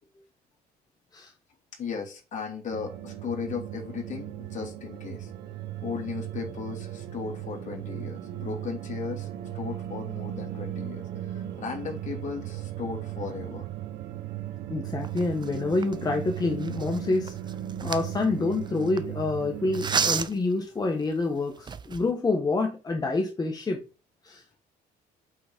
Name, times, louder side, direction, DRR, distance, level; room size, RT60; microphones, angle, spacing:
voice 1, 1.8-5.3 5.8-9.3 9.5-13.7, left 6 dB, 45° left, 2.9 m, -36 dB
sound 1, 2.7-20.2, right 12 dB, 85° right, 1.3 m, -37 dB
voice 2, 14.7-17.3 17.8-23.8 24.2-24.4, left 3 dB, 25° left, 1.4 m, -27 dB
sound 2, 15.0-19.0 19.7-20.5 21.1-21.2 21.6-22.1, right 5 dB, 25° right, 0.7 m, -32 dB
8.7 x 4.0 x 5.2 m
cardioid pair, 110°, 17 cm